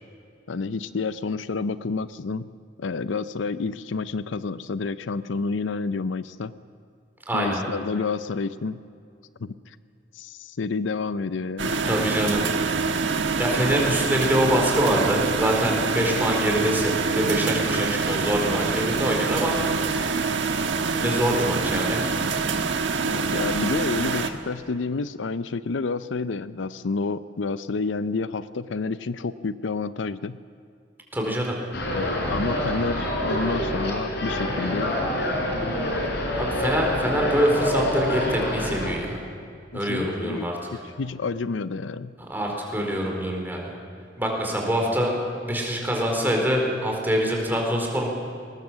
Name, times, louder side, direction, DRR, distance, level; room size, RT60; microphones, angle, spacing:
voice 1, 0.5-2.5 2.8-6.5 7.3-8.8 9.4-9.5 10.2-11.7 16.1-16.2 21.1-21.2 22.9-30.4 31.9-35.0 35.4-35.7 39.7-40.5 41.0-42.1, left 4 dB, 80° left, 14 dB, 0.6 m, -29 dB
voice 2, 7.3-7.6 11.8-12.4 13.4-19.6 20.9-22.1 31.1-31.6 35.8-36.0 36.4-39.2 39.7-40.6 42.3-43.7 44.2-45.1 45.4-48.1, equal, 10° right, 0 dB, 4.3 m, -24 dB
sound 1, 11.6-24.3, right 4 dB, 70° right, 1.3 m, -25 dB
sound 2, 31.7-38.9, left 1 dB, 65° left, 4.5 m, -27 dB
20.5 x 19.5 x 7.5 m, 2.4 s
head